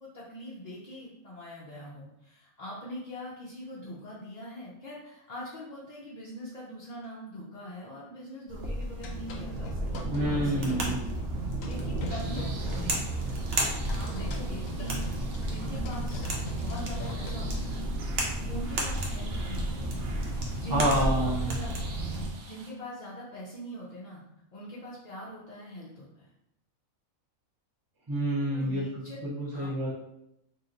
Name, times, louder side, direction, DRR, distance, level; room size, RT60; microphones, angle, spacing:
voice 1, 0.0-10.9 11.6-12.9 13.9-15.1 15.5-16.3 16.5-17.9 18.5-19.9 20.6-21.7 22.5-24.2 24.5-26.3 28.5-29.2 29.5-29.9, equal, 45° left, -7 dB, 0.5 m, -42 dB
sound 1, 8.5-22.3, right 1 dB, 65° right, 1.0 m, -32 dB
sound 2, 8.9-10.2 10.7-11.2 11.6-17.7, left 3 dB, 80° left, 1.0 m, -43 dB
voice 2, 10.1-11.0 20.7-21.6 28.1-28.8 29.2-29.9, right 1 dB, 25° right, -6 dB, 0.5 m, -28 dB
sound 3, 12.2-22.7, right 3 dB, 90° right, 1.1 m, -49 dB
3.0 x 2.8 x 3.8 m, 0.83 s
omnidirectional pair, 1.4 m